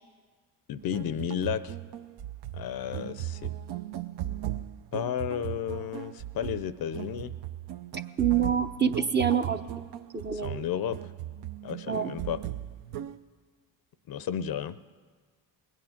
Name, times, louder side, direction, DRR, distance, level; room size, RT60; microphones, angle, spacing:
voice 1, 0.7-1.8 2.5-3.5 4.9-7.3 10.3-11.0 11.6-12.4 14.1-14.8, left 9 dB, 50° left, 15 dB, 0.6 m, -33 dB
sound 1, 0.8-13.2, right 12 dB, 60° right, 0.7 m, -37 dB
voice 2, 8.2-9.6 10.1-10.6 11.9-12.1, right 7 dB, 25° right, 8 dB, 0.7 m, -26 dB
20.5 x 9.1 x 5.7 m, 1.5 s
supercardioid pair, 60°, 45 cm